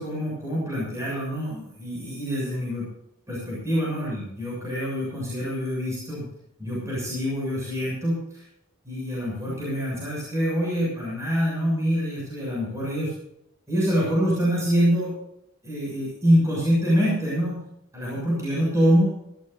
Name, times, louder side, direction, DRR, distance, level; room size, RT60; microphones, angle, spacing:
voice 1, 0.0-2.9 3.3-6.3 6.6-8.4 8.8-13.1 13.7-15.1 15.6-17.6 17.9-19.1, equal, 15° right, -5 dB, 7.2 m, -25 dB
19.5 x 15.5 x 2.7 m, 0.76 s
head